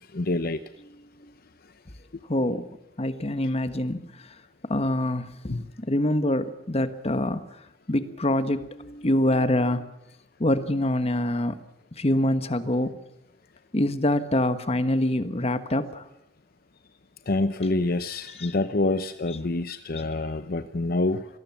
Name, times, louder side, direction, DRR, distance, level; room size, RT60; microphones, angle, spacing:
voice 1, 0.1-0.6 5.5-5.7 17.3-21.3, left 2 dB, 55° left, 11 dB, 0.8 m, -26 dB
voice 2, 2.3-2.6 3.0-4.1 4.7-5.6 5.9-7.4 7.9-9.8 10.4-11.6 12.0-12.9 13.7-16.0, left 1 dB, 35° left, 11 dB, 1.3 m, -25 dB
26.0 x 19.0 x 7.3 m, 0.86 s
head